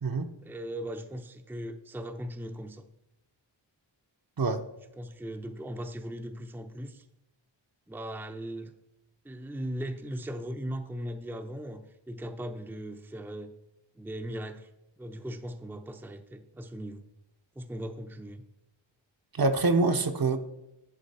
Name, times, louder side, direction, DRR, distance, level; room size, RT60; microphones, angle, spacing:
voice 1, 0.4-2.8 5.0-7.0 7.9-8.7 9.2-13.5 14.0-14.7 15.0-17.1 17.6-18.4, equal, 5° right, 6 dB, 0.5 m, -38 dB
voice 2, 19.3-20.4, right 3 dB, 50° right, 6 dB, 0.8 m, -25 dB
10.0 x 4.6 x 4.2 m, 0.93 s
wide cardioid pair, 55°, 46 cm